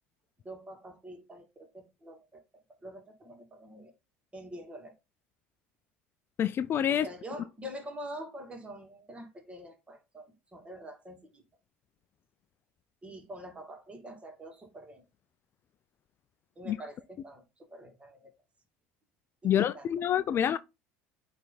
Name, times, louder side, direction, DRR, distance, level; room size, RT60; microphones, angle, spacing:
voice 1, 0.4-3.9 4.3-4.9 6.9-11.4 13.0-15.0 16.6-18.3 19.4-19.9 20.3-20.4, equal, 20° right, 2.5 m, -46 dB
voice 2, 6.4-7.1 16.7-16.8 19.4-20.6, left 10 dB, 45° left, 0.4 m, -27 dB
8.9 x 3.4 x 4.1 m
hypercardioid pair, 85°, 6 cm